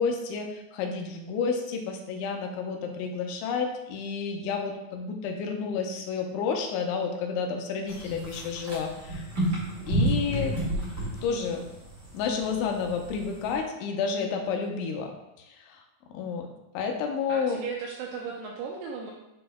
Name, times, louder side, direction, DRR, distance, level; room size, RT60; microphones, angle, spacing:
voice 1, 0.0-9.3 9.9-10.6 11.2-11.7 12.1-15.1 15.4-15.8 16.1-17.6, left 5 dB, 85° left, 3 dB, 3.1 m, -30 dB
sound 1, 7.9-13.5, right 1 dB, 30° right, 1.5 m, -31 dB
voice 2, 17.3-19.1, right 5 dB, 80° right, -2 dB, 2.4 m, -37 dB
10.0 x 4.3 x 2.2 m, 0.92 s
omnidirectional pair, 5.3 m